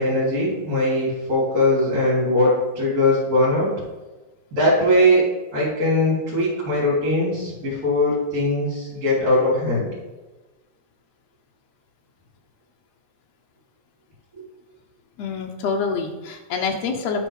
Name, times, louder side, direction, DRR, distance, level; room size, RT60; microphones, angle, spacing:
voice 1, 0.0-3.7 4.5-5.3 5.5-9.9 14.4-14.5, left 1 dB, 50° right, -10 dB, 4.3 m, -20 dB
voice 2, 15.2-17.3, left 5 dB, 80° left, 2 dB, 1.5 m, -26 dB
11.5 x 4.5 x 4.9 m, 1.2 s
omnidirectional pair, 4.0 m